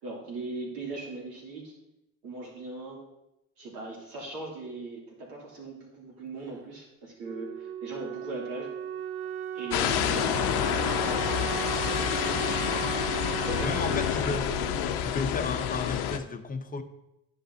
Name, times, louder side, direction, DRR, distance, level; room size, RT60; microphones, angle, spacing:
voice 1, 0.0-1.7 2.2-3.0 3.6-8.7 9.5-12.4 13.5-14.0, right 2 dB, 75° right, -3 dB, 2.5 m, -39 dB
Wind instrument woodwind instrument, 7.2-15.9, right 10 dB, 40° right, 0.5 m, -36 dB
sound 1, 9.7-16.2, left 10 dB, 70° left, 0.7 m, -28 dB
voice 2, 13.3-14.5 15.0-16.8, left 4 dB, 20° left, 7 dB, 0.7 m, -33 dB
10.0 x 5.2 x 2.7 m, 0.88 s
hypercardioid pair, 60°, 41 cm